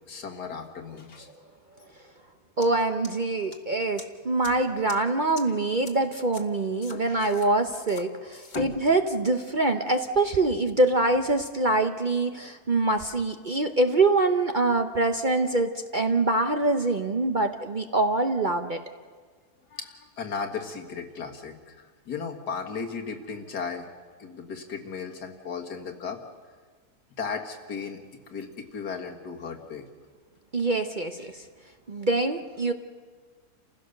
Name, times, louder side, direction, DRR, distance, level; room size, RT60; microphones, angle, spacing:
voice 1, 0.1-1.3 6.9-7.2 8.5-8.8 19.7-23.9 24.2-26.2 27.2-29.8, left 5 dB, 85° left, 2 dB, 2.3 m, -36 dB
sound 1, 2.6-2.7 3.0-3.6 4.0-4.1 4.4-4.5 4.9-5.0 5.4-5.5 5.9-6.0 6.3-6.4 6.8-7.5 7.9-8.0 8.3-8.6, left 3 dB, 30° left, 1.5 m, -43 dB
voice 2, 2.6-18.8 30.5-31.4 31.9-32.7, right 2 dB, 40° right, 6 dB, 0.8 m, -24 dB
30.0 x 15.5 x 6.6 m, 1.5 s
omnidirectional pair, 1.7 m